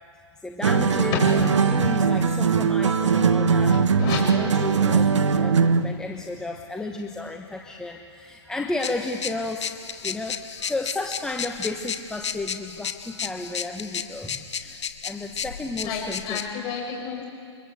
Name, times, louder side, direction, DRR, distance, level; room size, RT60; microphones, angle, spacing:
voice 1, 0.4-3.8 4.2-16.4, left 2 dB, 5° left, 2 dB, 1.1 m, -33 dB
sound 1, 0.6-5.9, right 5 dB, 75° right, 1.5 m, -20 dB
voice 2, 1.2-1.9 3.4-4.2 15.8-17.3, left 5 dB, 30° left, 0 dB, 7.3 m, -32 dB
sound 2, 8.8-16.5, left 7 dB, 70° left, 1.9 m, -34 dB
29.0 x 24.5 x 8.3 m, 2.4 s
hypercardioid pair, 145°, 15 cm